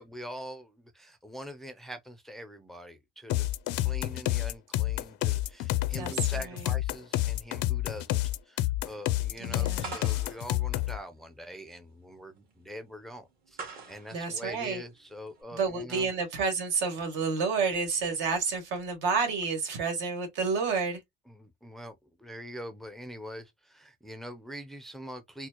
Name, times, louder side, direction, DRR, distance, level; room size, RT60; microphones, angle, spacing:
voice 1, 0.0-3.5 3.8-13.6 13.9-16.1 21.3-25.5, equal, ahead, 0.4 m, -44 dB
sound 1, 3.3-11.0, left 16 dB, 70° left, 0.4 m, -29 dB
voice 2, 6.0-6.5 9.4-10.0 14.1-14.8 15.5-21.0, right 5 dB, 75° right, 1.6 m, -30 dB
sound 2, 9.8-15.4, right 4 dB, 50° right, 1.5 m, -46 dB
4.2 x 2.0 x 2.8 m
cardioid pair, 140°, 19 cm